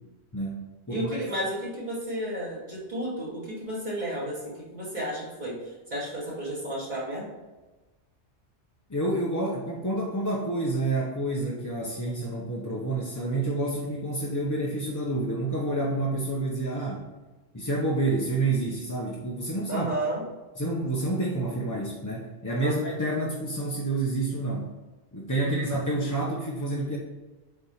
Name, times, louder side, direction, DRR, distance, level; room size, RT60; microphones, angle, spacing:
voice 1, 0.3-1.2 8.9-17.0 17.5-20.0 20.6-24.7 25.1-27.0, right 2 dB, 20° left, -4 dB, 0.8 m, -29 dB
voice 2, 0.9-5.6 5.9-7.3 19.7-20.2 22.6-22.8 25.4-25.8, right 1 dB, 40° right, -7 dB, 2.6 m, -32 dB
8.0 x 3.5 x 5.7 m, 1.2 s
omnidirectional pair, 1.2 m